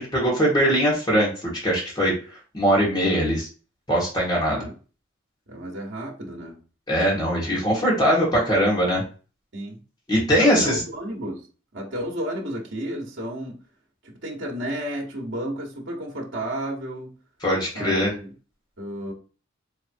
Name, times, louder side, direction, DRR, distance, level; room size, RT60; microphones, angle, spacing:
voice 1, 0.0-2.1 2.5-3.5 3.9-4.7 6.9-9.0 10.1-10.8 17.4-18.1, equal, 20° left, -5 dB, 1.6 m, -21 dB
voice 2, 5.5-6.6 9.5-9.8 10.4-11.5 11.7-13.6 14.0-17.1 17.7-18.3 18.8-19.1, right 1 dB, 60° right, -1 dB, 1.1 m, -32 dB
4.5 x 3.2 x 2.6 m, 0.36 s
head